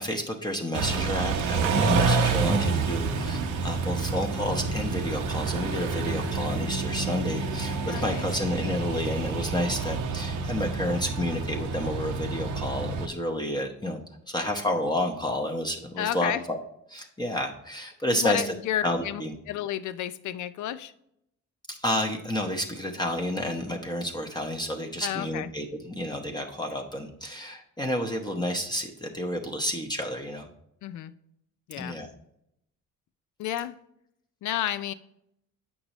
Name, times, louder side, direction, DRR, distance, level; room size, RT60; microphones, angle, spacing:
voice 1, 0.0-14.0 14.3-16.6 16.9-18.5 18.8-19.3 21.7-30.5 31.8-32.1, left 1 dB, 15° left, 1 dB, 0.9 m, -30 dB
Car / Idling / Accelerating revving vroom, 0.7-13.1, right 4 dB, 85° right, 0.8 m, -28 dB
voice 2, 7.9-8.3 16.0-16.4 18.1-20.9 25.0-25.5 30.8-31.1 31.7-32.0 33.4-33.7 34.4-34.9, left 11 dB, 75° left, 14 dB, 0.5 m, -31 dB
8.5 x 5.4 x 3.0 m, 0.76 s
cardioid pair, 90°, 30 cm